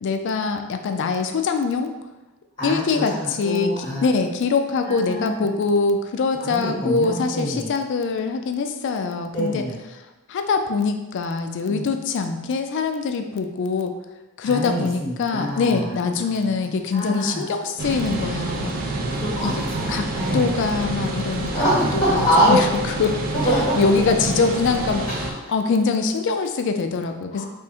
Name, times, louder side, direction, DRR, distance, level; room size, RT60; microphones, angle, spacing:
voice 1, 0.0-1.9 2.6-9.7 10.3-14.0 14.4-19.0 19.4-19.6 19.9-20.1 20.3-21.5 21.9-23.2 23.7-27.5, left 4 dB, 55° left, 6 dB, 0.3 m, -23 dB
voice 2, 2.6-4.0 4.8-5.4 6.5-7.7 9.3-9.8 11.7-11.8 14.4-15.9 16.7-17.4 19.1-20.6 21.5-22.6 23.4-23.8 25.1-25.2 27.3-27.5, equal, 20° left, -8 dB, 1.1 m, -24 dB
sound 1, 17.8-25.3, right 2 dB, 40° right, 0.4 m, -27 dB
3.5 x 2.0 x 4.3 m, 1.1 s
head